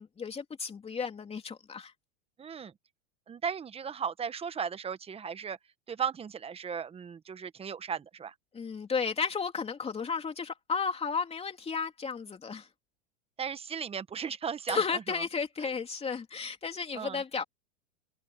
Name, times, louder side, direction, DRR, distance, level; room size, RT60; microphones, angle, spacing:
voice 1, 0.0-1.9 8.5-12.7 14.7-17.4, left 5 dB, 15° left, 3.2 m, -33 dB
voice 2, 2.4-2.7 3.3-5.6 5.9-8.3 13.4-15.0 16.9-17.2, right 7 dB, 15° right, 1.3 m, -36 dB
open air
hypercardioid pair, 120°, 35 cm